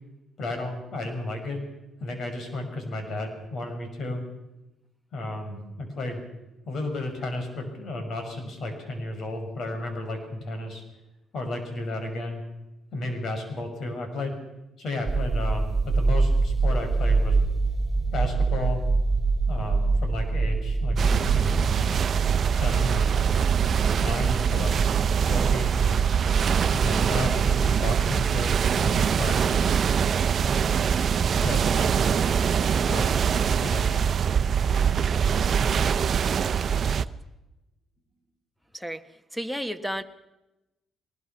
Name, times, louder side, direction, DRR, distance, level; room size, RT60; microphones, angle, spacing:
voice 1, 0.4-1.6 2.0-4.2 5.1-6.2 6.7-10.8 11.3-12.4 12.9-14.3 14.8-17.4 18.1-18.8 19.5-21.6 22.5-23.1 24.0-24.8 25.0-26.1 26.7-29.6 30.4-30.5 31.4-32.3 32.7-33.2 33.6-33.9, left 2 dB, 60° left, 5 dB, 6.2 m, -33 dB
sound 1, 15.1-21.9, right 3 dB, 20° right, 2.8 m, -24 dB
sound 2, 21.0-37.1, right 7 dB, 55° right, 0.8 m, -23 dB
voice 2, 38.7-39.0 39.3-40.0, equal, ahead, 11 dB, 1.3 m, -32 dB
22.5 x 20.5 x 5.9 m, 0.98 s
cardioid pair, 90°, 0 cm